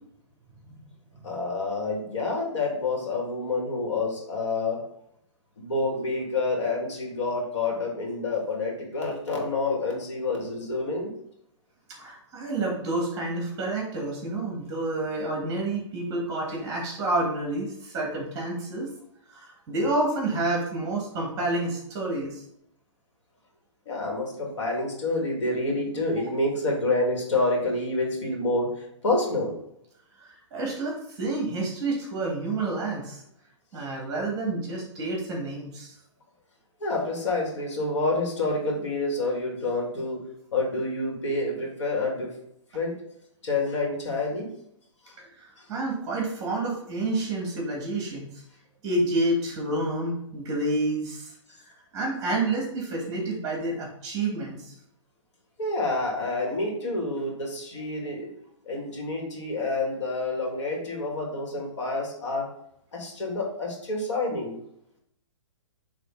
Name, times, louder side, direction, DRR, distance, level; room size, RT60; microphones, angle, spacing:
voice 1, 1.2-4.8 5.6-11.1 23.9-29.6 36.8-40.2 40.5-42.3 42.7-43.0 43.4-44.5 45.1-45.2 45.6-45.7 55.6-58.3 58.7-62.5 62.9-64.6, left 2 dB, 65° left, 0 dB, 2.3 m, -28 dB
voice 2, 12.0-18.9 19.3-22.4 30.2-33.2 33.7-35.9 45.2-48.3 48.8-51.3 51.9-54.7, right 2 dB, 20° right, -1 dB, 1.8 m, -29 dB
7.4 x 3.3 x 3.8 m, 0.73 s
hypercardioid pair, 155°, 16 cm